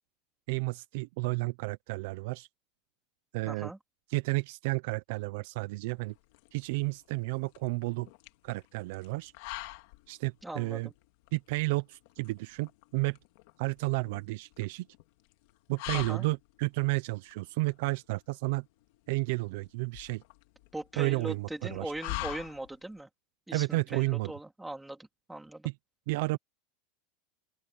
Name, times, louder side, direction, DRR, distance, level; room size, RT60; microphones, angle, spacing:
voice 1, 0.5-2.5 3.3-3.7 4.1-6.1 6.5-8.1 8.4-9.3 10.1-10.9 11.3-13.2 13.6-14.9 15.7-18.6 19.1-20.2 21.0-21.9 23.5-24.3 25.6-25.7 26.1-26.4, right 24 dB, 50° right, 0.5 m, -32 dB
voice 2, 3.5-3.8 10.4-10.9 15.9-16.3 20.7-23.1 23.5-25.7, right 1 dB, 5° right, 3.1 m, -40 dB
sound 1, 6.0-23.0, left 20 dB, 50° left, 2.1 m, -45 dB
open air
supercardioid pair, 180°, 0 cm